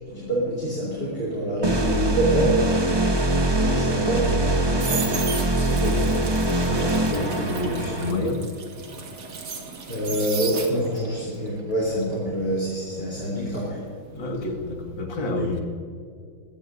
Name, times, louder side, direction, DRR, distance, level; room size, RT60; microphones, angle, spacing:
voice 1, 0.1-2.8 3.5-6.6 7.0-8.2 9.9-13.8 15.2-15.3, right 1 dB, 30° left, -6 dB, 3.9 m, -27 dB
sound 1, 1.6-8.1, right 1 dB, 20° right, 0.8 m, -23 dB
sound 2, 4.4-11.1 11.5-14.4 14.6-15.0, right 5 dB, 60° right, 2.2 m, -35 dB
voice 2, 5.6-6.0 6.6-8.4 14.1-15.6, left 2 dB, 75° left, 1 dB, 2.7 m, -29 dB
21.0 x 16.5 x 2.7 m, 2.3 s
omnidirectional pair, 2.1 m